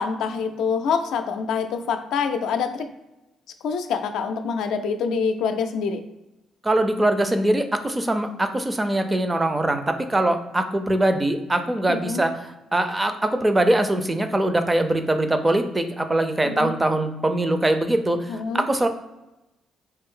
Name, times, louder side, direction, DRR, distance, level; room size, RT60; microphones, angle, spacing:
voice 1, 0.0-2.9 3.6-6.0 11.9-12.2 16.4-16.7 18.3-18.6, left 5 dB, 80° left, 7 dB, 0.4 m, -26 dB
voice 2, 6.6-12.4 12.7-18.9, right 1 dB, 15° right, 8 dB, 0.4 m, -22 dB
3.4 x 2.6 x 3.7 m, 0.98 s
cardioid pair, 95°, 0 cm